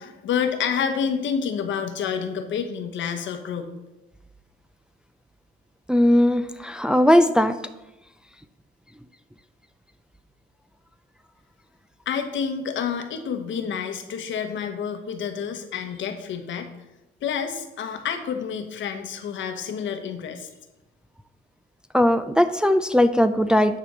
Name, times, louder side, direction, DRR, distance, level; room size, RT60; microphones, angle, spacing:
voice 1, 0.0-3.7 12.1-16.7 17.2-20.5, left 7 dB, 70° left, 7 dB, 1.1 m, -28 dB
voice 2, 5.9-7.6 21.9-23.8, left 1 dB, 5° right, 9 dB, 0.4 m, -19 dB
9.6 x 4.3 x 6.3 m, 0.98 s
cardioid pair, 90°, 20 cm